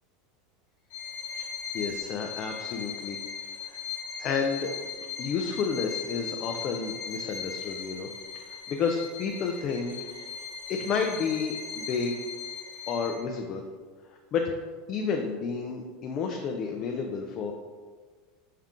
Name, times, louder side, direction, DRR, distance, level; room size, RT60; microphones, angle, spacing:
Bowed string instrument, 0.9-13.4, left 6 dB, 90° left, 1.0 m, -38 dB
voice 1, 1.7-3.2 3.6-3.8 4.2-4.7 5.2-8.1 8.3-9.9 10.7-12.2 12.9-13.6 14.3-14.5 14.9-17.5, left 5 dB, 35° left, 2 dB, 0.3 m, -30 dB
5.4 x 2.4 x 3.6 m, 1.5 s
supercardioid pair, 165°, 0 cm